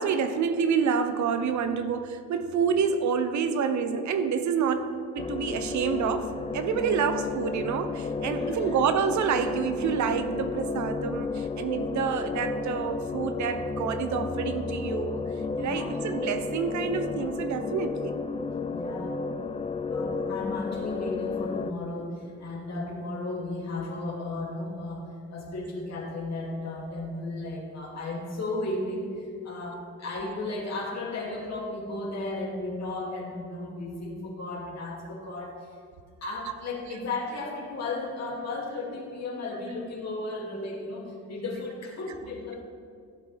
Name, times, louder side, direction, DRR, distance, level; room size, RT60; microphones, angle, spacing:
voice 1, 0.0-15.3 15.6-18.1 42.6-42.7, right 6 dB, 70° right, 9 dB, 0.8 m, -28 dB
sound 1, 5.2-21.7, left 4 dB, 20° left, 0.4 m, -32 dB
voice 2, 8.2-8.8 15.5-16.0 18.7-19.2 19.9-25.0 25.3-35.6 36.2-42.6, left 2 dB, 60° left, -2 dB, 2.7 m, -35 dB
15.0 x 8.1 x 3.5 m, 2.3 s
cardioid pair, 90°, 30 cm